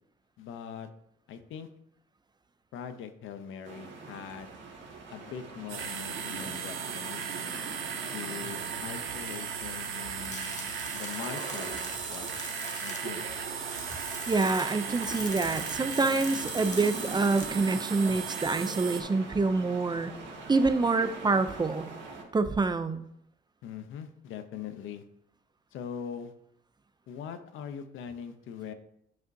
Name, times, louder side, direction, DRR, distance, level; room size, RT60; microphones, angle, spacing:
voice 1, 0.4-0.9 1.3-1.7 2.7-4.5 5.1-7.3 8.0-12.3 12.8-13.3 23.6-25.0 25.7-26.3 27.1-28.7, left 7 dB, 85° left, 9 dB, 0.7 m, -42 dB
sound 1, 3.6-22.2, right 4 dB, 65° right, 1.9 m, -42 dB
sound 2, 5.7-19.0, right 7 dB, 85° right, 1.0 m, -37 dB
sound 3, 10.2-17.4, left 4 dB, 40° left, 1.4 m, -44 dB
voice 2, 14.3-20.1 20.5-21.9 22.3-23.0, right 3 dB, 20° right, 11 dB, 0.5 m, -26 dB
9.4 x 5.0 x 2.7 m, 0.74 s
cardioid pair, 90°, 20 cm